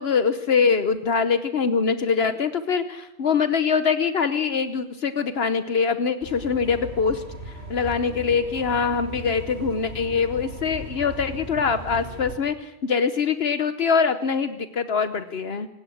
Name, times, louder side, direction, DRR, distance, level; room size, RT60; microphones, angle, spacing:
voice 1, 0.0-7.2 7.7-15.7, left 5 dB, 70° left, 11 dB, 1.2 m, -23 dB
sound 1, 6.2-12.4, equal, 75° right, 4.7 m, -38 dB
26.0 x 16.5 x 7.9 m, 0.90 s
omnidirectional pair, 1.1 m